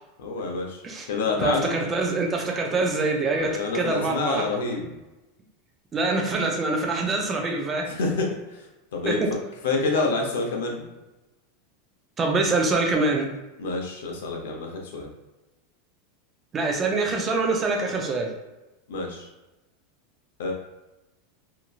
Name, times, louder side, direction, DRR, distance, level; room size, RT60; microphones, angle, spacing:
voice 1, 0.2-1.8 3.4-4.9 7.9-9.2 9.6-10.8 13.6-15.1 18.9-19.3 20.4-20.5, left 3 dB, 90° left, 1 dB, 0.7 m, -28 dB
voice 2, 1.4-4.5 5.9-7.9 9.0-9.3 12.2-13.3 16.5-18.3, right 3 dB, 15° right, 2 dB, 0.3 m, -25 dB
2.9 x 2.5 x 2.3 m, 1.0 s
supercardioid pair, 175°, 0 cm